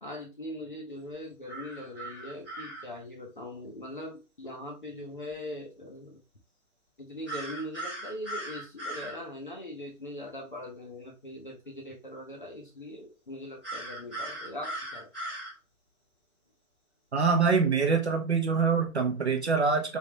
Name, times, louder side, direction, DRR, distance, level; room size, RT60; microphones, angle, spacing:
voice 1, 0.0-6.2 7.0-15.1, left 1 dB, 35° left, 0 dB, 0.6 m, -41 dB
sound 1, 1.5-2.8 7.3-9.2 13.6-15.5, right 1 dB, 5° right, 0.7 m, -38 dB
voice 2, 17.1-20.0, right 5 dB, 50° right, 4 dB, 0.6 m, -25 dB
3.3 x 2.7 x 3.1 m, 0.30 s
hypercardioid pair, 165°, 44 cm